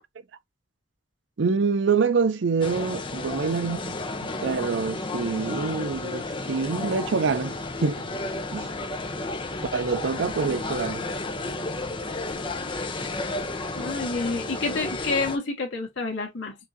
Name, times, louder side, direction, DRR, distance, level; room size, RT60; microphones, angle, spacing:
voice 1, 1.4-4.0 4.4-8.0 8.5-8.7 9.7-11.0, right 5 dB, 75° right, 0.5 m, -26 dB
sound 1, 2.6-15.4, left 2 dB, 25° left, 0.7 m, -32 dB
voice 2, 13.8-16.6, left 3 dB, 85° left, 1.8 m, -28 dB
5.9 x 2.7 x 2.6 m
head